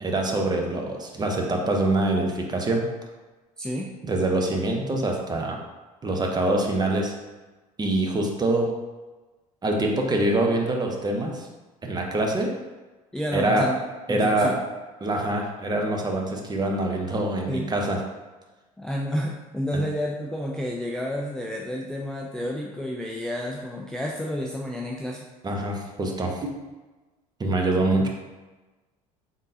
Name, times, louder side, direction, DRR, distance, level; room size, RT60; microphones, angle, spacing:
voice 1, 0.0-2.8 4.0-5.6 6.0-7.1 7.8-8.7 9.6-11.5 11.8-12.5 13.3-13.7 14.1-14.5 15.0-18.0 19.7-19.8 25.4-26.5 27.4-28.1, right 2 dB, 20° right, 1 dB, 0.8 m, -24 dB
voice 2, 3.6-3.9 13.1-13.8 14.1-14.6 17.5-17.7 18.8-25.2, equal, 5° left, -2 dB, 0.4 m, -30 dB
3.7 x 3.7 x 2.7 m, 1.2 s
hypercardioid pair, 65°, 19 cm